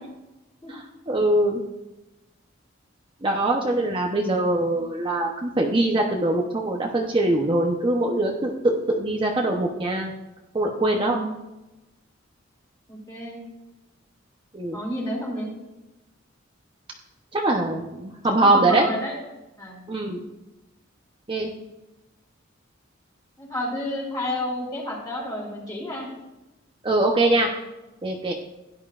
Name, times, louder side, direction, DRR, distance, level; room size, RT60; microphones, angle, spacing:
voice 1, 1.1-1.6 3.2-10.1 10.5-11.2 14.5-14.8 17.3-18.8 19.9-20.2 21.3-21.5 26.8-27.5 28.0-28.3, right 2 dB, 25° right, 0 dB, 0.9 m, -22 dB
voice 2, 10.9-11.4 12.9-13.4 14.7-15.5 18.4-19.1 19.6-19.9 23.4-26.1, left 1 dB, 20° left, -4 dB, 4.4 m, -30 dB
16.5 x 11.0 x 2.5 m, 1.0 s
head